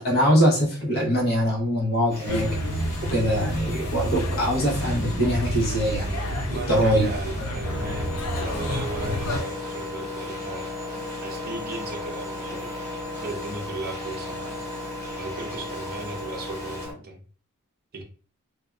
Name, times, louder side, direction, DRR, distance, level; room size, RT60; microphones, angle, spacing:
voice 1, 0.0-2.5 3.1-6.1 6.7-7.1, equal, 45° left, -3 dB, 0.9 m, -22 dB
sound 1, 2.1-16.9, left 1 dB, 15° left, 1.1 m, -43 dB
sound 2, 2.3-9.4, equal, 85° left, 0.5 m, -29 dB
voice 2, 6.5-10.7 11.2-12.6 13.2-14.6 15.2-17.2 17.9-18.0, right 2 dB, 45° right, 2 dB, 0.5 m, -36 dB
Engine, 7.6-16.9, left 2 dB, 10° right, 1.2 m, -35 dB
2.5 x 2.2 x 2.2 m, 0.40 s
head